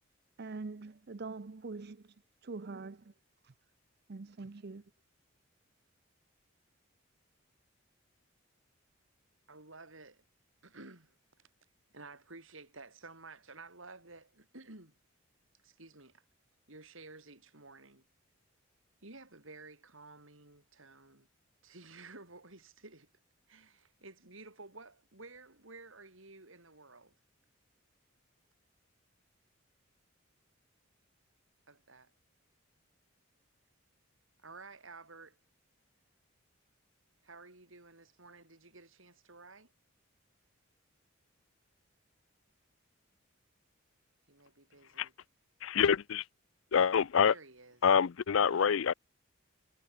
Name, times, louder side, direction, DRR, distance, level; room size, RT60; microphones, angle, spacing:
voice 1, 0.4-2.0 2.4-3.0 4.1-4.8, right 3 dB, 50° right, 0.6 m, -43 dB
voice 2, 9.5-10.2 10.6-11.5 11.9-15.0 15.6-16.2 16.7-18.1 19.0-21.3 21.6-23.1 23.5-27.2 31.7-32.1 34.4-35.4 37.2-39.7 44.3-45.1 47.2-47.8, right 3 dB, 70° right, 4.8 m, -53 dB
voice 3, 45.6-46.2 46.7-47.3 47.8-48.9, left 7 dB, 70° left, 0.5 m, -26 dB
head